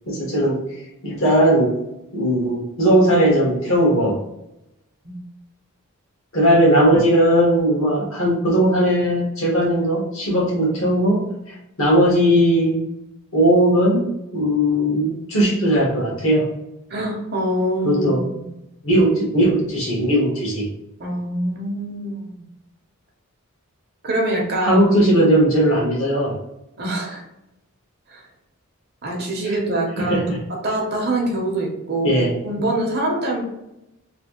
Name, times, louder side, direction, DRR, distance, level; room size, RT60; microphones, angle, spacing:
voice 1, 0.1-0.6 1.0-1.7 2.1-4.2 6.3-11.2 11.5-12.8 13.3-14.0 14.3-16.5 17.8-18.2 18.8-20.7 24.6-26.3 30.0-30.4 32.0-32.3, equal, 65° left, -4 dB, 1.4 m, -18 dB
voice 2, 16.9-18.5 21.0-22.4 24.0-24.8 26.8-27.2 28.1-28.2 29.0-30.3 30.6-33.4, right 1 dB, 45° right, 0 dB, 0.8 m, -24 dB
3.2 x 2.7 x 3.0 m, 0.89 s
head